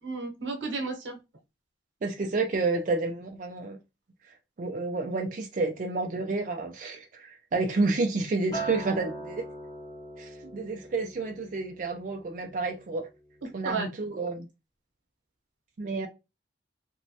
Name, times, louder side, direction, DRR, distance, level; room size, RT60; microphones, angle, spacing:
voice 1, 0.0-1.2 13.6-13.9, right 3 dB, 85° right, 0.9 m, -32 dB
voice 2, 2.0-3.8 4.6-9.4 10.2-13.1 13.5-14.5 15.8-16.1, right 3 dB, 45° right, 0.4 m, -30 dB
Acoustic guitar, 8.5-12.9 13.3-13.7, right 2 dB, 20° left, 0.8 m, -41 dB
3.0 x 2.1 x 2.7 m
head